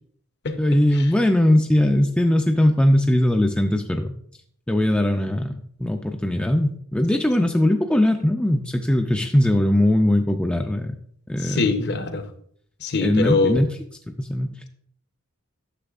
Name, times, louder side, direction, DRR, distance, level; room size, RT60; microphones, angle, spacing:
voice 1, 0.6-4.1 4.7-10.9 11.3-11.9 13.0-13.7 14.1-14.7, left 1 dB, 5° left, 4 dB, 0.3 m, -20 dB
voice 2, 11.4-12.2 12.8-13.6, left 3 dB, 50° left, 8 dB, 0.7 m, -23 dB
10.0 x 6.8 x 2.4 m, 0.63 s
head